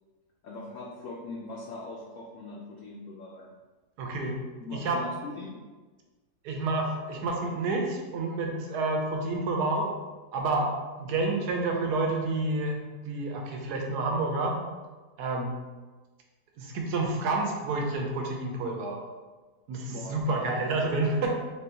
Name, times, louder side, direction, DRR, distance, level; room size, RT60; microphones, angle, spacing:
voice 1, 0.4-3.5 4.6-5.5 19.9-20.7, left 2 dB, 70° left, -2 dB, 0.7 m, -41 dB
voice 2, 4.0-4.4 4.7-5.0 6.4-9.9 10.3-12.8 13.1-14.6 15.2-15.5 16.6-19.0 19.7-21.4, right 2 dB, 75° right, 1 dB, 1.2 m, -29 dB
3.7 x 3.3 x 2.8 m, 1.3 s
omnidirectional pair, 1.8 m